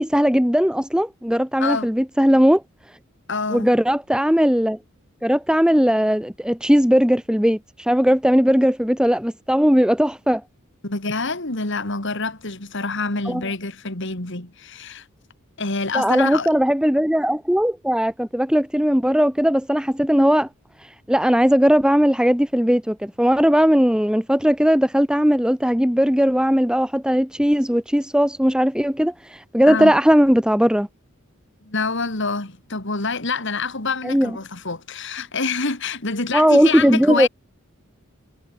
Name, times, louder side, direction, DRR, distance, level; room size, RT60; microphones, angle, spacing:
voice 1, 0.0-2.6 3.5-4.8 5.2-10.4 13.3-13.4 15.9-20.5 20.8-30.9 34.0-34.4 36.3-37.3, equal, 5° right, 2.3 m, -18 dB
voice 2, 3.3-3.7 10.8-15.1 15.6-16.5 29.7-29.9 31.7-37.3, left 3 dB, 60° left, 3.2 m, -26 dB
head